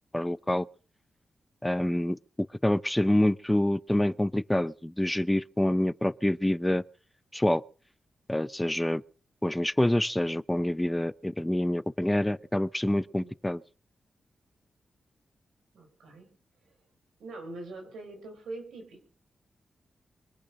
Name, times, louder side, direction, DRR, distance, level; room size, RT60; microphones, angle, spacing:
voice 1, 0.1-0.7 1.6-6.8 7.3-7.6 8.3-9.0 9.4-13.6, left 1 dB, 10° left, 0.6 m, -27 dB
voice 2, 15.7-16.3 16.6-16.8 17.2-19.1, right 2 dB, 85° right, 5.5 m, -43 dB
24.0 x 8.3 x 6.4 m
supercardioid pair, 45°, 0 cm